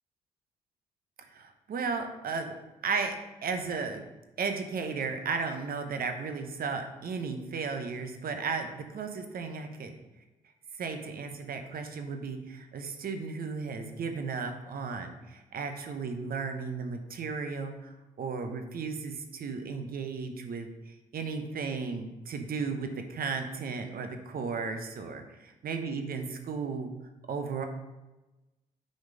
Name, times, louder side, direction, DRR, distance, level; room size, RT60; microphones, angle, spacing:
voice 1, 1.3-2.5 2.8-3.1 3.4-4.0 4.4-9.9 10.8-20.7 21.1-26.9 27.3-27.7, right 5 dB, 55° right, 6 dB, 0.9 m, -35 dB
6.3 x 4.4 x 5.1 m, 1.1 s
hypercardioid pair, 50°, 18 cm